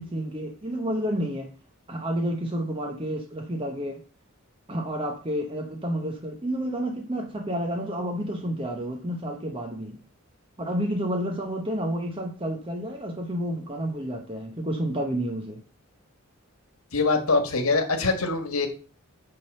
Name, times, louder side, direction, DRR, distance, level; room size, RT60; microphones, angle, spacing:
voice 1, 0.0-1.5 1.9-4.0 4.7-10.0 10.6-15.6, equal, 25° right, 1.0 m, -30 dB
voice 2, 16.9-18.7, left 3 dB, 80° left, 1.7 m, -23 dB
8.9 x 3.8 x 6.7 m
head